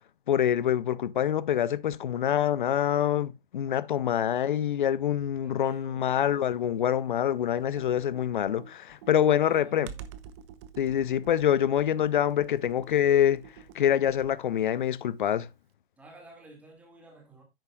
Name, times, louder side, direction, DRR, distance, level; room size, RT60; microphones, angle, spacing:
voice 1, 0.3-9.9 10.8-13.4 13.7-15.5, left 10 dB, 55° left, 0.7 m, -25 dB
voice 2, 5.4-6.5 9.1-10.1 16.0-17.4, right 2 dB, 5° right, 2.1 m, -53 dB
Computer keyboard, 7.6-14.5, right 8 dB, 30° right, 0.8 m, -48 dB
10.5 x 8.7 x 2.3 m
hypercardioid pair, 135°, 30 cm